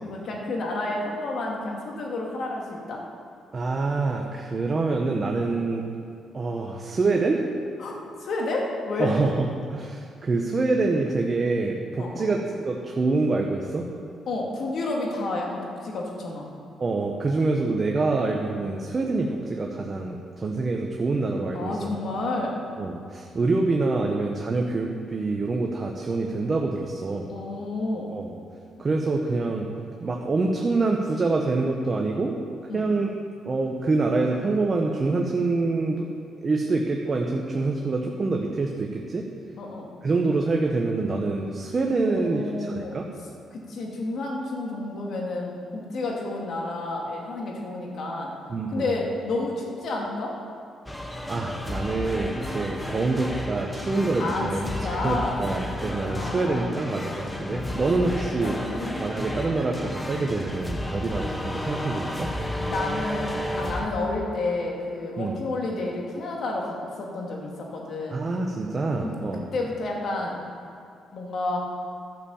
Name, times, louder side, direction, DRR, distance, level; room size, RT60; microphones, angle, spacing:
voice 1, 0.0-3.0 7.8-7.9 8.2-9.1 12.0-12.3 14.3-16.5 21.5-22.5 27.3-28.1 32.7-32.9 39.6-39.9 42.1-43.0 43.5-48.3 48.7-50.3 54.2-55.4 56.1-56.7 58.4-59.0 62.6-63.3 63.6-68.2 69.0-70.4 71.1-71.6, left 2 dB, 60° left, -1 dB, 2.4 m, -30 dB
voice 2, 3.5-5.8 6.3-7.4 9.0-12.4 12.6-13.8 16.8-21.9 22.8-27.3 28.1-28.4 28.8-29.7 30.0-32.3 32.7-33.1 33.4-36.1 36.4-39.2 40.0-43.1 48.5-48.9 51.3-58.6 59.0-62.3 65.2-65.4 68.1-69.4, right 3 dB, 35° right, 1 dB, 1.0 m, -26 dB
sound 1, 50.9-63.9, left 1 dB, 10° left, 1.2 m, -32 dB
12.0 x 6.8 x 7.1 m, 2.4 s
cardioid pair, 90°, 0 cm